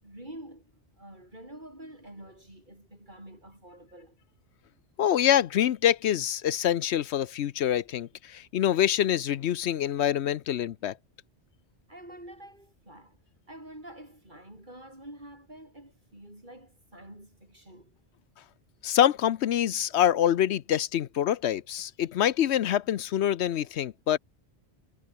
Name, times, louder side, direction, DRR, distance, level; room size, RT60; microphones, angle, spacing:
voice 1, 0.0-4.2 11.9-13.2 13.5-17.9, right 1 dB, 45° right, 8.3 m, -47 dB
voice 2, 5.0-10.9 18.8-24.2, left 10 dB, 75° left, 0.9 m, -25 dB
omnidirectional pair, 1.1 m